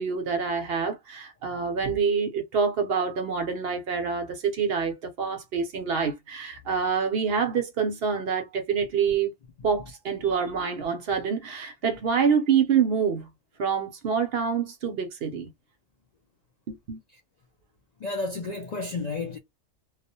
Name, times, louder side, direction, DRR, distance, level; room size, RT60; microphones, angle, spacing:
voice 1, 0.0-9.3 9.6-13.3 13.6-15.5 16.7-17.0, right 6 dB, 60° right, 0.7 m, -26 dB
voice 2, 18.0-19.4, left 3 dB, 75° left, 0.3 m, -31 dB
2.3 x 2.0 x 2.6 m
omnidirectional pair, 1.2 m